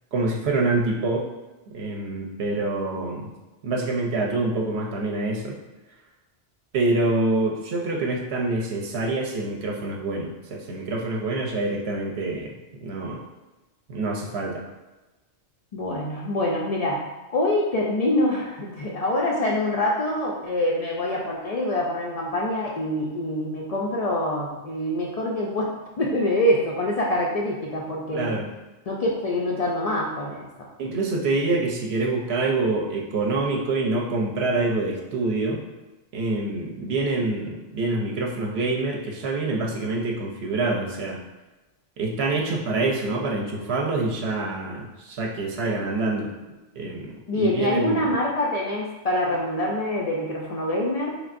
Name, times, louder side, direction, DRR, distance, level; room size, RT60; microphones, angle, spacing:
voice 1, 0.1-1.3 1.7-3.3 3.6-5.6 6.7-12.5 12.8-13.2 13.9-14.6 28.1-28.5 30.8-35.6 36.1-41.2 42.0-46.3 46.8-48.1, right 2 dB, 65° right, 0 dB, 0.8 m, -26 dB
voice 2, 15.7-17.0 17.3-25.7 26.0-28.4 28.9-30.7 47.3-51.2, left 1 dB, 80° left, -3 dB, 0.3 m, -25 dB
4.3 x 3.4 x 2.5 m, 1.1 s
omnidirectional pair, 1.2 m